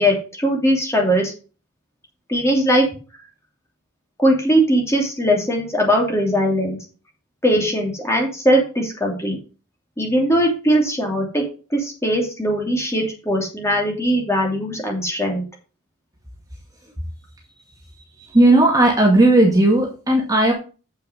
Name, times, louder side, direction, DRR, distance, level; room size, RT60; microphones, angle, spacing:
voice 1, 0.0-1.3 2.3-2.9 4.2-6.8 7.4-9.4 10.0-11.4 11.7-15.4, equal, 15° left, 0 dB, 2.9 m, -20 dB
voice 2, 18.2-20.5, right 1 dB, 15° right, 0 dB, 2.1 m, -15 dB
8.2 x 6.5 x 5.1 m, 0.34 s
head